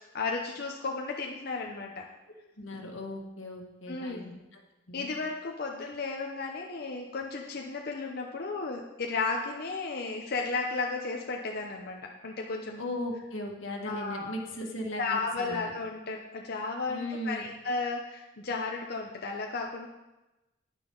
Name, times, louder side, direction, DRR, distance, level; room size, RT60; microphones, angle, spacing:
voice 1, 0.1-2.0 3.9-4.3 4.9-12.8 13.8-14.4 15.0-19.9, left 4 dB, 55° left, 1 dB, 0.8 m, -34 dB
voice 2, 2.6-4.6 4.9-5.1 12.8-15.7 16.9-17.4, left 1 dB, 85° left, 1 dB, 1.7 m, -37 dB
10.0 x 9.6 x 3.9 m, 1.0 s
head